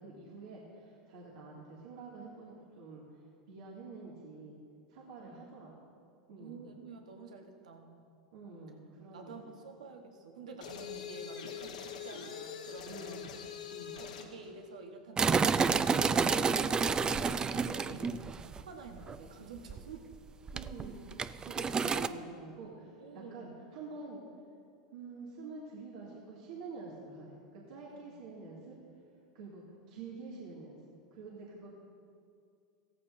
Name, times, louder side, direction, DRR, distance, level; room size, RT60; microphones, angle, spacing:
voice 1, 0.0-3.2 3.5-4.6 4.9-5.9 6.3-6.7 8.3-9.5 12.9-13.3 13.7-13.9 17.9-18.1 20.5-24.3 24.9-28.8 29.3-30.8 31.1-31.7, right 3 dB, 75° right, -5 dB, 2.3 m, -47 dB
voice 2, 6.4-8.1 9.1-13.2 13.9-20.0 23.0-23.6 27.9-28.2, right 4 dB, 90° right, 3 dB, 1.2 m, -49 dB
sound 1, 10.6-14.4, left 8 dB, 90° left, 1.4 m, -43 dB
sound 2, 15.2-18.6 19.0-19.2 19.7-20.1 20.5-22.1, right 5 dB, 20° right, 0.4 m, -29 dB
16.5 x 14.0 x 2.7 m, 2.3 s
hypercardioid pair, 105°, 4 cm